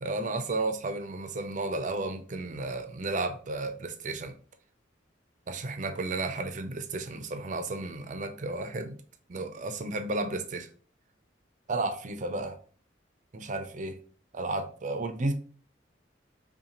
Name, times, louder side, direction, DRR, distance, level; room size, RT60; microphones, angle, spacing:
voice 1, 0.0-4.3 5.5-9.0 9.3-10.7 11.7-12.6 13.3-14.0 14.3-15.3, right 2 dB, 40° right, 0.5 m, -33 dB
5.5 x 2.2 x 2.9 m
head